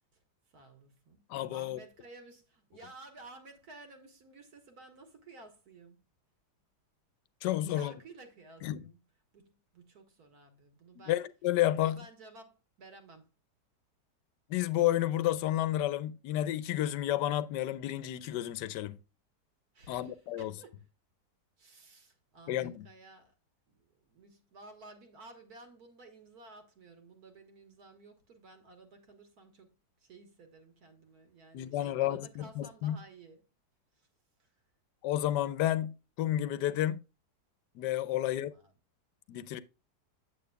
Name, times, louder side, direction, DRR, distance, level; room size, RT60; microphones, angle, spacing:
voice 1, 0.5-1.2 1.5-6.0 7.7-9.0 9.3-11.2 11.7-13.3 19.7-20.8 21.6-23.3 23.7-29.7 30.0-33.5 33.9-34.1 34.4-34.5 38.1-38.7, right 3 dB, 60° right, 1.8 m, -54 dB
voice 2, 1.3-1.8 7.4-7.9 8.6-8.8 11.1-12.0 14.5-19.0 19.9-20.5 22.5-22.9 31.5-33.0 35.0-37.0 37.7-38.5 39.3-39.6, left 13 dB, 80° left, 1.2 m, -31 dB
8.6 x 7.9 x 2.2 m
omnidirectional pair, 1.8 m